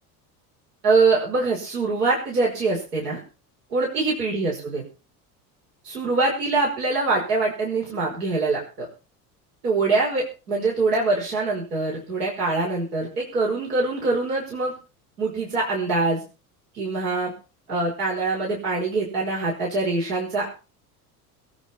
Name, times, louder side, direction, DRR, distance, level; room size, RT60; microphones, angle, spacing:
voice 1, 0.8-3.2 3.7-4.8 5.8-8.9 9.6-14.7 15.2-16.2 16.7-17.3 17.7-20.5, right 3 dB, 80° right, -2 dB, 5.5 m, -24 dB
22.5 x 8.9 x 4.5 m, 0.34 s
hypercardioid pair, 70°, 46 cm